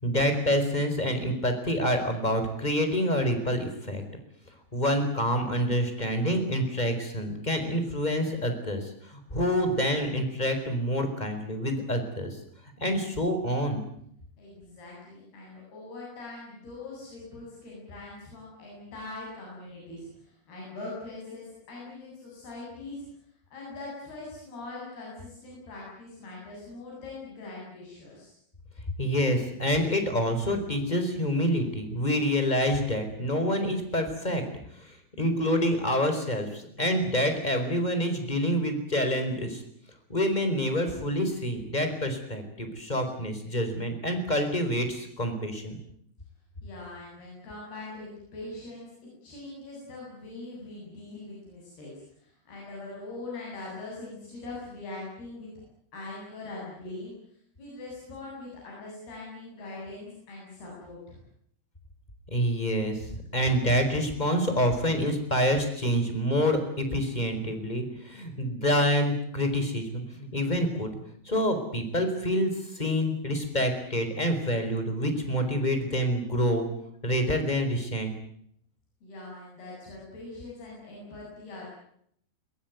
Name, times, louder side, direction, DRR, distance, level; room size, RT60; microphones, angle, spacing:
voice 1, 0.0-4.0 4.7-12.4 12.8-13.8 29.0-34.4 34.8-39.6 40.1-45.8 62.3-70.9 71.2-76.7 77.0-78.1, equal, 10° left, 7 dB, 4.3 m, -27 dB
voice 2, 14.4-23.1 23.5-28.3 46.6-48.9 49.2-51.9 52.2-55.5 55.9-57.1 57.6-61.2 79.0-81.7, left 2 dB, 90° left, -4 dB, 10.0 m, -42 dB
22.5 x 22.0 x 9.4 m, 0.69 s
omnidirectional pair, 4.4 m